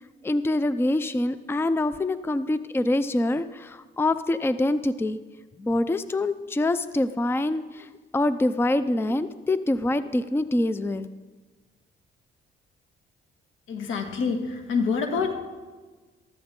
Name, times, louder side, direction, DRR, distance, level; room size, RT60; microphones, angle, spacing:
voice 1, 0.2-5.2 5.6-11.1, left 2 dB, 10° left, 13 dB, 0.5 m, -25 dB
voice 2, 13.7-15.3, left 5 dB, 85° left, 5 dB, 1.7 m, -26 dB
14.0 x 13.5 x 3.8 m, 1.3 s
cardioid pair, 90°, 20 cm